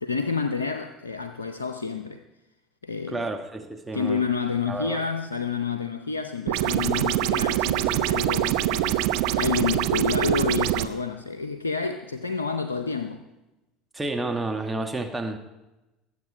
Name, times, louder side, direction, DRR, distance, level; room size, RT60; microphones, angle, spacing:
voice 1, 0.0-2.2 2.8-3.2 3.9-13.3, left 5 dB, 85° left, 0.5 m, -29 dB
voice 2, 3.1-4.2 4.7-5.0 7.8-8.0 13.9-15.4, right 2 dB, 10° right, 1.4 m, -30 dB
sound 1, 6.5-10.9, right 13 dB, 65° right, 0.6 m, -24 dB
21.0 x 8.0 x 4.9 m
figure-of-eight pair, 70°, 0 cm